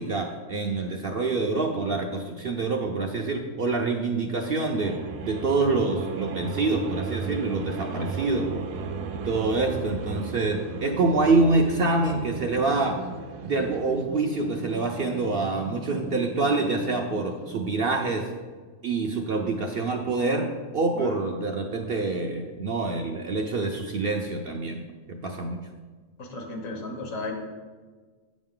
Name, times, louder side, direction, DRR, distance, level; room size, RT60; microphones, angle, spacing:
voice 1, 0.0-5.0 5.2-8.6 9.1-13.0 13.4-18.3 18.8-25.6, right 3 dB, 60° right, 2 dB, 0.6 m, -26 dB
sound 1, 4.7-17.9, right 4 dB, 85° right, 1.1 m, -36 dB
voice 2, 26.2-27.3, left 2 dB, 75° left, 2 dB, 1.7 m, -35 dB
8.0 x 6.2 x 3.7 m, 1.4 s
omnidirectional pair, 1.4 m